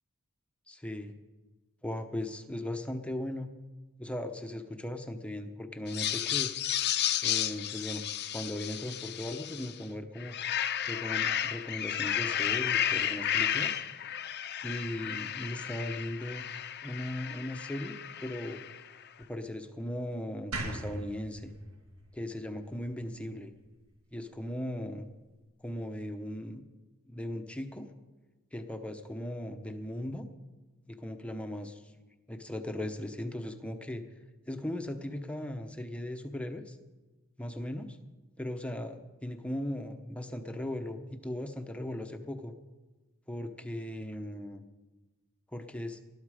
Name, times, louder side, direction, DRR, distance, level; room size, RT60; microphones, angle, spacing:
voice 1, 0.7-1.1 1.8-3.5 4.0-6.5 7.2-8.0 8.3-10.4 10.9-13.8 14.6-16.4 16.8-18.6 19.3-21.5 22.1-23.5 24.1-25.1 25.6-26.6 27.1-27.9 28.5-30.3 30.9-31.9 32.3-34.0 34.5-36.8 37.4-38.0 38.4-42.5 43.3-44.6 45.5-46.0, left 1 dB, 5° left, 5 dB, 0.9 m, -38 dB
sound 1, 5.9-9.8 10.2-18.9, left 10 dB, 50° left, 0.7 m, -33 dB
sound 2, 20.5-23.7, right 1 dB, 70° right, 1.9 m, -41 dB
20.0 x 11.5 x 5.0 m, 1.2 s
head